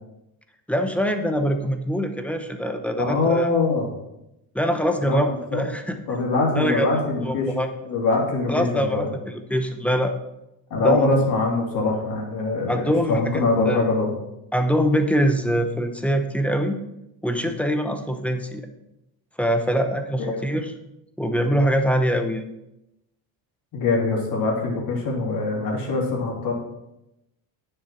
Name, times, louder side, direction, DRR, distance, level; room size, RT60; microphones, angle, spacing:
voice 1, 0.7-3.5 4.5-6.0 6.6-7.7 8.5-10.1 10.8-11.1 12.7-13.8 14.5-16.8 17.2-18.6 19.4-20.7 21.2-22.4, equal, 5° left, 6 dB, 0.8 m, -23 dB
voice 2, 3.0-3.9 5.0-5.6 6.1-7.5 7.8-9.1 10.7-14.1 20.2-20.4 23.7-26.5, left 3 dB, 50° left, -2 dB, 3.1 m, -23 dB
9.7 x 6.9 x 4.4 m, 0.89 s
cardioid pair, 125°, 44 cm